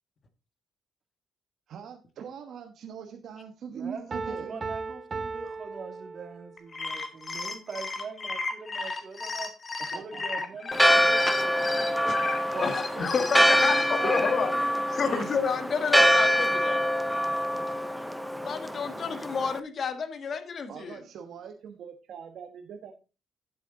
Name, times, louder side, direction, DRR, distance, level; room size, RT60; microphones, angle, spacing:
voice 1, 1.7-4.5 9.8-10.4 20.7-22.9, right 7 dB, 70° right, 5 dB, 1.2 m, -42 dB
voice 2, 3.7-9.5 9.9-12.2 12.5-14.8 15.0-15.2, right 4 dB, 50° right, 4 dB, 2.6 m, -42 dB
Piano, 4.1-6.7, right 4 dB, 35° right, 0.9 m, -37 dB
sound 1, 6.6-14.3, left 3 dB, 35° left, 1.9 m, -34 dB
Church bell, 10.7-19.6, equal, 5° right, 0.8 m, -25 dB
voice 3, 12.5-16.8 18.4-21.0, left 5 dB, 50° left, 9 dB, 1.6 m, -30 dB
10.5 x 7.9 x 3.9 m, 0.31 s
cardioid pair, 90°, 0 cm